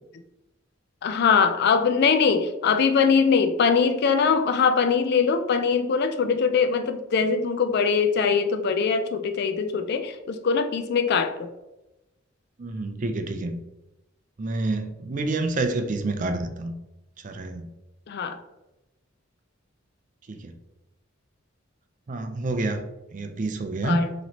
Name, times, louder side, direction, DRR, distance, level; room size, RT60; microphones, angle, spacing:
voice 1, 1.0-11.5 18.1-18.4 23.8-24.1, left 5 dB, 55° left, 7 dB, 0.4 m, -22 dB
voice 2, 12.6-13.6 14.4-16.7 17.2-17.7 20.3-20.6 22.1-22.9 23.1-24.0, right 2 dB, 40° right, 6 dB, 0.4 m, -28 dB
4.1 x 3.0 x 2.9 m, 0.96 s
head